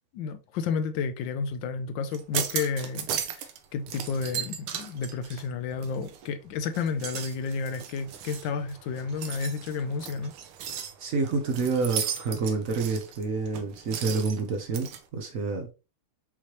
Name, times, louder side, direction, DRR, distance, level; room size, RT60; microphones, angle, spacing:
voice 1, 0.1-3.1 3.3-10.3, left 5 dB, 75° left, 1.2 m, -31 dB
sound 1, 2.1-3.6 3.9-6.3 6.7-15.0, right 9 dB, 90° right, 1.6 m, -36 dB
voice 2, 11.0-15.7, right 4 dB, 65° right, 0.8 m, -28 dB
5.6 x 3.1 x 2.9 m
omnidirectional pair, 2.4 m